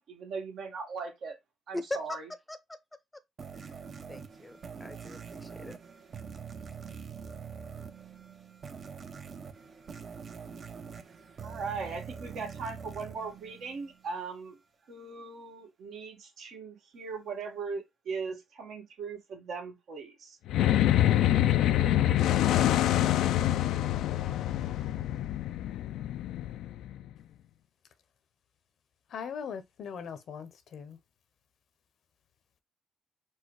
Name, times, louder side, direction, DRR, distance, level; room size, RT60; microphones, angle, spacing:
voice 1, 0.1-1.4 1.7-2.2 11.4-14.6 14.9-20.4, right 4 dB, 75° right, 1.5 m, -39 dB
voice 2, 1.7-2.2 2.5-2.8 3.5-3.8 4.1-5.8, left 2 dB, 15° left, 0.6 m, -40 dB
sound 1, 3.4-14.2, right 6 dB, 50° right, 0.7 m, -44 dB
sound 2, 20.5-27.1, left 12 dB, 85° left, 0.4 m, -26 dB
voice 3, 29.1-31.0, left 7 dB, 65° left, 0.8 m, -40 dB
4.5 x 2.1 x 4.7 m
cardioid pair, 90°, 0 cm